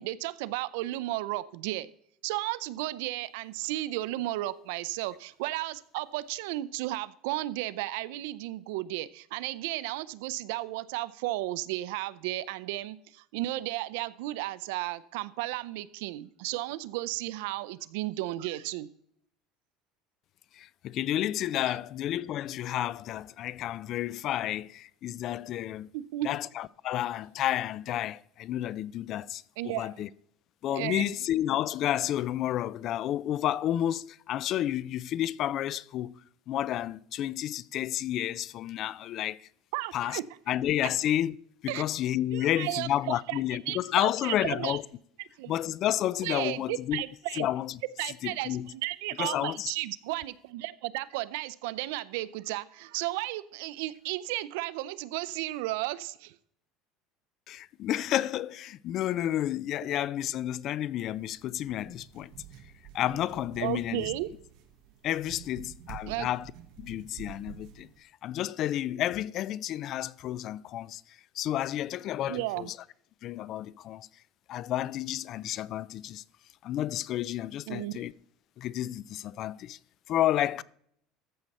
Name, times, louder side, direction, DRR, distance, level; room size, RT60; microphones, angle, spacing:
voice 1, 0.0-1.9 2.2-18.9 21.7-21.8 25.9-26.3 29.6-30.0 30.7-31.1 39.7-40.2 40.8-40.9 41.7-41.8 42.3-43.4 43.7-44.8 45.4-45.5 46.2-47.5 48.0-56.3 63.6-64.3 66.1-66.3 72.3-72.7 77.7-78.0, right 17 dB, 85° right, 0.5 m, -34 dB
voice 2, 20.6-25.9 26.2-30.1 30.6-36.1 36.5-39.4 39.9-40.2 40.5-41.4 41.6-44.8 45.5-47.0 47.4-47.8 48.2-48.7 49.2-49.7 57.5-62.3 62.9-64.1 65.0-66.4 66.8-67.9 68.2-71.0 71.4-72.7 73.2-74.1 74.5-76.2 76.6-78.1 78.6-79.8 80.1-80.6, left 12 dB, 45° left, 0.3 m, -31 dB
sound 1, 61.0-68.0, right 10 dB, 60° right, 1.4 m, -49 dB
14.0 x 6.6 x 4.2 m
cardioid pair, 150°, 0 cm